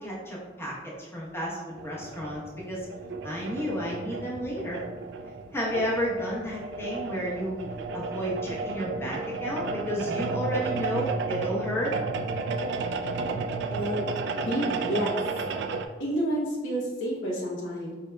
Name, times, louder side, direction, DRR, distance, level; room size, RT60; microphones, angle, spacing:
voice 1, 0.0-2.9 3.2-4.8 5.5-11.9, equal, 15° left, -5 dB, 0.9 m, -32 dB
sound 1, 1.8-15.9, right 3 dB, 65° right, 0.3 m, -33 dB
voice 2, 13.7-14.0 14.4-15.2 16.0-17.9, equal, 75° left, -4 dB, 0.8 m, -29 dB
4.7 x 3.6 x 2.2 m, 1.3 s
head